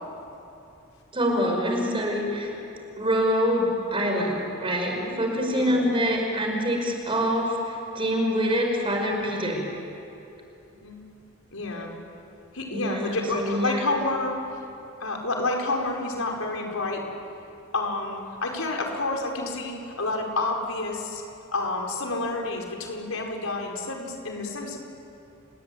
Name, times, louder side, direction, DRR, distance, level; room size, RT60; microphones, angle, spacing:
voice 1, 1.1-2.5 3.0-9.6 12.7-13.9, equal, 25° right, 2 dB, 5.0 m, -25 dB
voice 2, 11.5-11.9 12.5-14.4 15.0-17.0 17.7-21.2 21.5-24.8, left 2 dB, 85° left, 1 dB, 5.2 m, -29 dB
30.0 x 20.0 x 9.5 m, 2.8 s
head